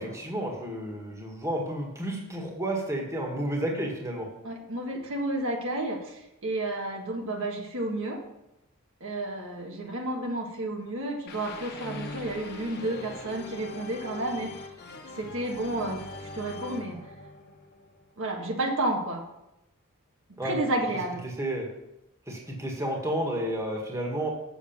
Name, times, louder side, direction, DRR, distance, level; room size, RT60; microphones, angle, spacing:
voice 1, 0.0-4.3 20.4-20.6 21.4-21.7 22.3-24.3, right 1 dB, 15° right, 0 dB, 1.8 m, -31 dB
voice 2, 4.4-8.2 9.0-14.7 15.1-17.0 18.2-19.2 20.3-21.2, right 1 dB, 65° right, 1 dB, 1.6 m, -31 dB
sound 1, 11.3-18.2, left 2 dB, 50° left, 1.1 m, -42 dB
7.1 x 6.9 x 7.2 m, 0.89 s
head